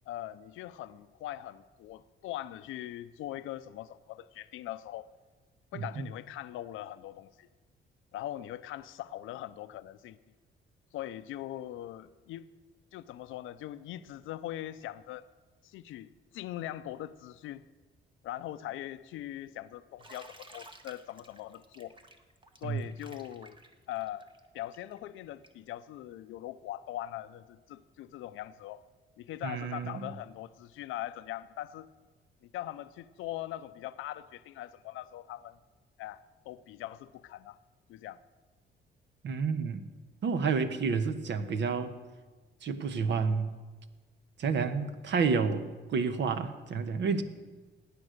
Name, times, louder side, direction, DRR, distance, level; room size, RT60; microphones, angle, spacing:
voice 1, 0.1-5.1 5.7-7.5 8.1-10.2 10.9-12.5 12.9-15.3 15.6-17.6 18.2-22.0 22.6-23.6 23.9-24.3 24.5-28.8 29.2-31.9 32.4-35.6 36.0-37.6 37.9-38.2, left 13 dB, 85° left, 0.6 m, -41 dB
voice 2, 5.7-6.0 22.6-22.8 29.4-30.1 39.2-39.9 40.2-41.9 42.6-43.5 44.4-47.2, right 5 dB, 65° right, 1.2 m, -30 dB
Bathtub (filling or washing), 20.0-25.7, right 2 dB, 25° right, 1.6 m, -54 dB
17.0 x 9.7 x 6.6 m
cardioid pair, 90°, 20 cm